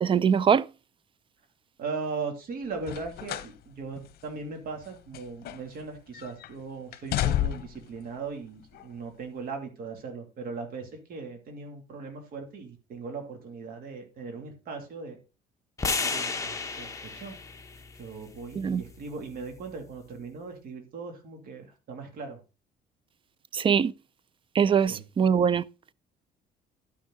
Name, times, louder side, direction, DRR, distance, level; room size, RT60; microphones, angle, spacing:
voice 1, 0.0-0.7 18.6-18.8 23.5-23.9 24.6-25.6, right 7 dB, 30° right, 0.4 m, -22 dB
voice 2, 1.8-15.2 15.8-17.4 18.0-22.4 24.9-25.0, right 4 dB, 60° right, 2.8 m, -39 dB
sound 1, 2.8-3.6 4.0-4.1 4.8-5.9 6.1-6.5 6.9-7.9 8.7-8.8, left 12 dB, 65° left, 0.8 m, -31 dB
sound 2, 15.8-20.0, left 4 dB, 20° left, 1.1 m, -34 dB
11.5 x 6.2 x 4.0 m
cardioid pair, 110°, 17 cm